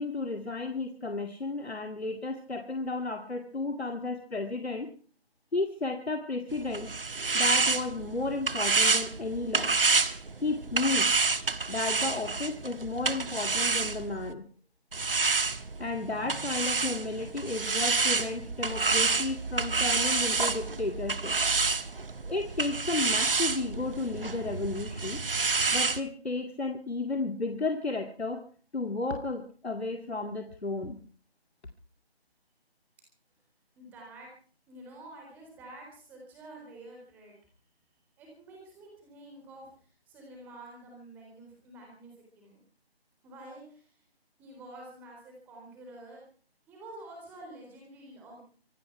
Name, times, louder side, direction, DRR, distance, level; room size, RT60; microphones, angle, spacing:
voice 1, 0.0-4.9 5.5-6.9 7.3-9.8 10.4-11.1 11.7-14.5 15.8-21.4 22.3-25.2 25.7-28.4 28.7-31.0, left 3 dB, 90° left, 5 dB, 2.3 m, -33 dB
sound 1, 6.5-14.3 14.9-26.0, right 4 dB, 60° right, 1.4 m, -28 dB
voice 2, 33.8-34.3 34.7-37.3 38.2-42.6 43.2-44.0 44.4-46.2 46.7-48.4, right 1 dB, 5° right, 0 dB, 3.9 m, -49 dB
25.5 x 12.0 x 4.7 m, 0.42 s
figure-of-eight pair, 165°, 31 cm